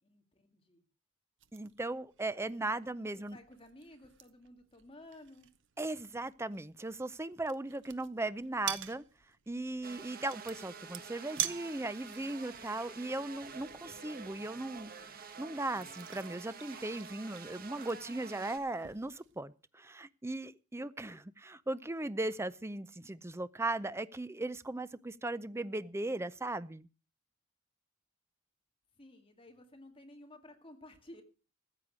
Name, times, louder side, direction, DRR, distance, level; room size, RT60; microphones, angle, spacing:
voice 1, 0.0-0.9 2.8-5.5 28.9-31.2, left 1 dB, 25° left, 2.0 m, -55 dB
sound 1, 1.4-19.4, right 11 dB, 60° right, 0.9 m, -47 dB
voice 2, 1.5-3.4 5.8-9.0 9.5-14.9 15.4-26.9, right 2 dB, 10° right, 0.5 m, -38 dB
sound 2, 9.8-18.6, right 5 dB, 45° right, 1.4 m, -49 dB
14.5 x 8.5 x 6.2 m
head